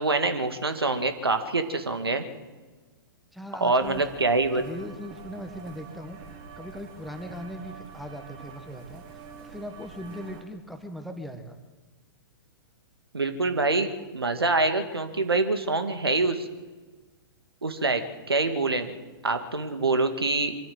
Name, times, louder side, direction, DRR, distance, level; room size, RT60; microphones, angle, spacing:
voice 1, 0.0-2.2 3.6-4.6 13.1-16.5 17.6-18.9 19.2-20.6, right 3 dB, 75° right, 8 dB, 2.0 m, -25 dB
voice 2, 3.3-4.0 4.5-6.2 6.6-11.6, equal, ahead, 7 dB, 1.5 m, -39 dB
sound 1, 3.8-10.4, right 5 dB, 30° right, 3.3 m, -46 dB
24.0 x 14.0 x 7.8 m, 1.3 s
figure-of-eight pair, 115°, 13 cm